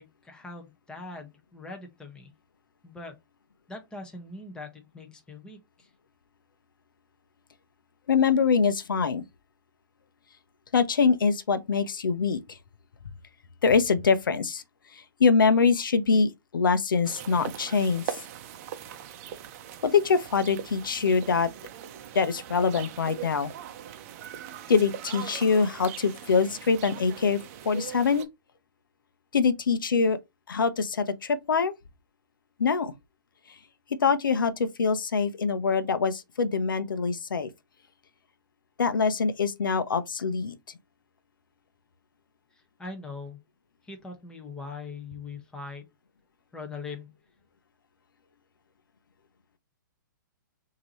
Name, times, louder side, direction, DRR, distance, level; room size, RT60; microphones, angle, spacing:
voice 1, 0.0-2.3 2.8-3.2 3.7-5.9 42.5-43.4 43.8-45.8 46.5-47.1, left 3 dB, 5° left, 1.1 m, -41 dB
voice 2, 8.1-9.2 10.7-12.6 13.6-14.6 14.9-18.2 19.8-21.5 22.1-23.5 24.7-27.4 27.6-28.3 29.3-30.2 30.5-31.7 32.6-32.9 34.0-37.5 38.8-40.6, left 5 dB, 80° left, 0.8 m, -24 dB
sound 1, 17.0-28.3, right 10 dB, 45° right, 0.7 m, -41 dB
6.1 x 2.9 x 3.0 m
hypercardioid pair, 130°, 11 cm